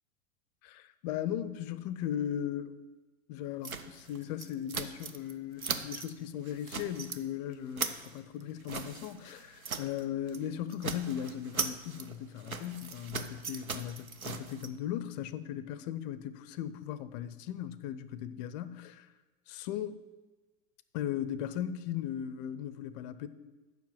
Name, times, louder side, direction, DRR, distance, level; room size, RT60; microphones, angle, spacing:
voice 1, 0.6-2.8 3.3-19.1 19.5-20.0 20.9-23.3, left 10 dB, 35° left, 0.5 m, -37 dB
sound 1, 3.6-5.3 5.6-6.1 6.5-7.2 7.5-10.0 10.3-10.5 10.7-14.7, right 5 dB, 90° right, 0.7 m, -39 dB
7.3 x 5.7 x 7.3 m
figure-of-eight pair, 95°, 41 cm